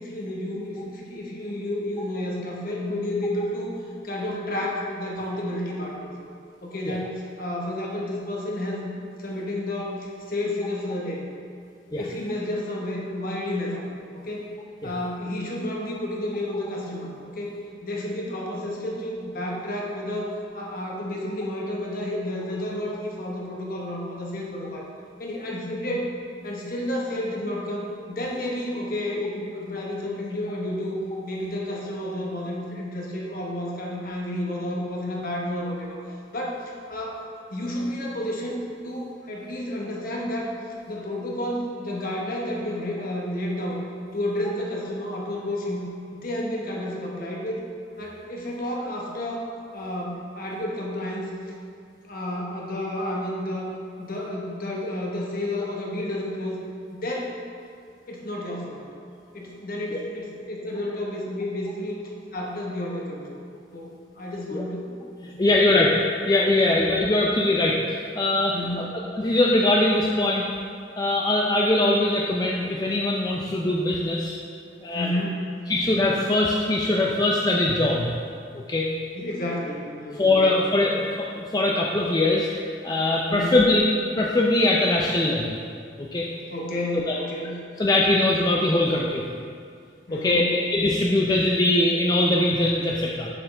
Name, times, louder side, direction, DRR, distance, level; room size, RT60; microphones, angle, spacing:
voice 1, 0.0-3.7 4.0-6.1 6.6-8.9 9.2-11.2 12.0-13.8 14.1-14.5 14.8-17.5 17.8-24.8 25.2-26.1 26.4-36.0 36.3-37.2 37.5-40.5 40.9-43.8 44.1-45.8 46.1-47.6 48.0-49.5 49.7-51.3 52.1-53.7 54.0-56.6 56.9-57.3 58.1-58.9 59.3-61.9 62.3-63.4 63.7-65.0 65.2-65.6 66.7-66.8 68.5-68.9 74.9-75.5 79.1-81.0 83.3-83.6 86.5-87.5 90.1-90.5, left 1 dB, 50° left, -3 dB, 1.3 m, -31 dB
voice 2, 65.4-66.0 66.3-68.9 69.1-70.5 71.0-74.3 74.8-75.1 75.7-78.1 78.5-78.9 80.2-82.5 82.8-83.8 84.2-85.6 86.0-86.3 87.1-87.2 87.8-89.2 90.1-93.3, left 2 dB, 20° left, -2 dB, 0.4 m, -22 dB
7.4 x 6.9 x 3.4 m, 2.3 s
head